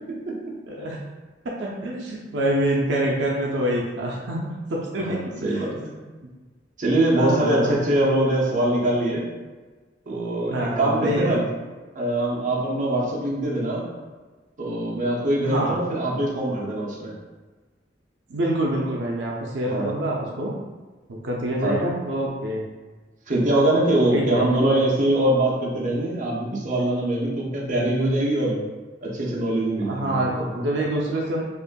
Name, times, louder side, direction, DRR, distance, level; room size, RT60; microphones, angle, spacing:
voice 1, 0.7-1.0 1.4-5.7 7.1-7.8 10.5-11.3 15.4-15.8 18.3-20.5 21.1-22.6 24.1-24.4 29.9-31.4, right 1 dB, 80° right, -2 dB, 0.5 m, -26 dB
voice 2, 5.0-5.9 6.8-9.3 10.1-11.4 11.9-13.9 14.6-17.1 19.7-19.9 21.6-21.9 23.3-28.6 29.0-30.6, right 1 dB, 45° right, -4 dB, 0.8 m, -23 dB
5.2 x 2.5 x 2.2 m, 1.3 s
head